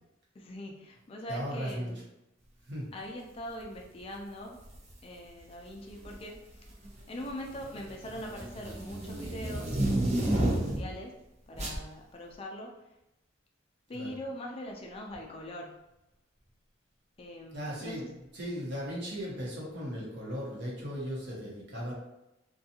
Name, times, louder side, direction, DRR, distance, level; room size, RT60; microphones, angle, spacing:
voice 1, 0.3-2.0 2.9-4.6 5.0-6.7 7.1-9.8 10.3-11.1 11.5-12.7 13.9-15.7 17.2-18.0, equal, 30° left, 1 dB, 0.3 m, -42 dB
voice 2, 1.3-1.9 2.6-2.9 10.2-10.6 13.9-14.2 17.5-18.0 18.3-21.9, equal, 60° right, -4 dB, 1.0 m, -37 dB
sound 1, 4.6-4.9 5.9-6.3 6.7-11.0 11.6-11.8, right 1 dB, 35° right, 0.5 m, -31 dB
2.6 x 2.4 x 2.7 m, 0.92 s
head